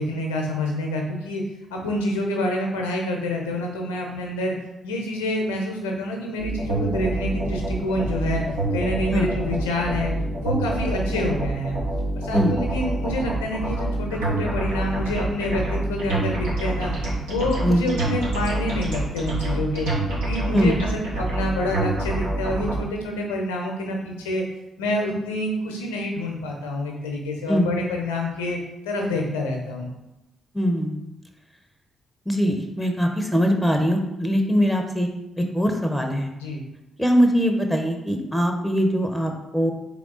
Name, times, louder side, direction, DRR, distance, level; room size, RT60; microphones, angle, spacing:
voice 1, 0.0-1.4 1.7-4.5 4.8-8.4 8.7-10.1 10.4-11.8 12.1-15.6 15.9-16.9 17.3-19.9 20.2-24.4 24.8-28.6 28.8-29.9 36.4-36.6, left 1 dB, 80° left, 1 dB, 0.7 m, -27 dB
sound 1, 6.4-22.7, right 2 dB, 80° right, 1.3 m, -26 dB
voice 2, 30.5-31.0 32.3-35.1 35.4-36.3 37.0-39.7, equal, 5° left, 4 dB, 0.7 m, -22 dB
3.6 x 3.4 x 3.8 m, 0.92 s
hypercardioid pair, 40°, 0 cm